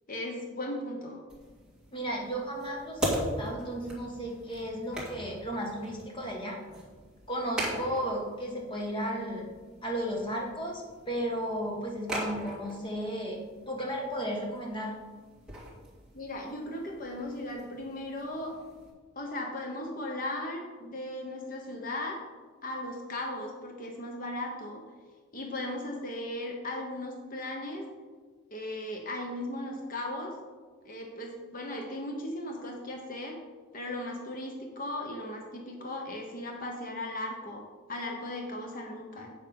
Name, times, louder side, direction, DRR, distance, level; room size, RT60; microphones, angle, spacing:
voice 1, 0.1-1.2 16.1-18.6 19.1-22.2 22.6-24.8 25.3-27.8 28.5-30.4 30.8-33.4 33.7-39.3, left 1 dB, 40° left, 1 dB, 1.1 m, -37 dB
sound 1, 1.3-18.9, equal, 5° right, 2.0 m, -40 dB
voice 2, 1.9-6.6 7.3-9.5 9.8-13.4 13.7-14.9, equal, 25° left, -1 dB, 1.7 m, -34 dB
8.0 x 6.9 x 5.3 m, 1.4 s
head